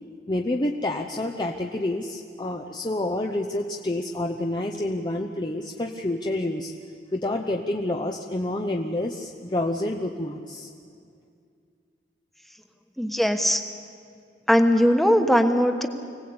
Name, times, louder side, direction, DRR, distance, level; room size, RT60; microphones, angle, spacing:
voice 1, 0.3-6.7 7.1-10.7, left 1 dB, 25° left, 3 dB, 0.8 m, -28 dB
voice 2, 13.0-13.6 14.5-15.9, equal, ahead, 6 dB, 1.3 m, -19 dB
25.0 x 18.0 x 8.7 m, 2.3 s
head